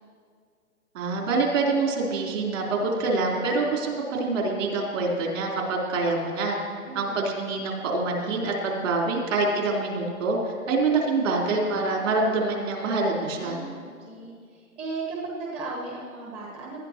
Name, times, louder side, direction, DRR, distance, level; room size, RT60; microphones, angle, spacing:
voice 1, 0.9-6.6 6.9-13.6, right 3 dB, 60° right, -2 dB, 3.9 m, -26 dB
voice 2, 6.8-7.2 13.3-16.8, right 3 dB, 15° right, -2 dB, 1.1 m, -36 dB
19.0 x 11.5 x 3.0 m, 2.1 s
hypercardioid pair, 150°, 44 cm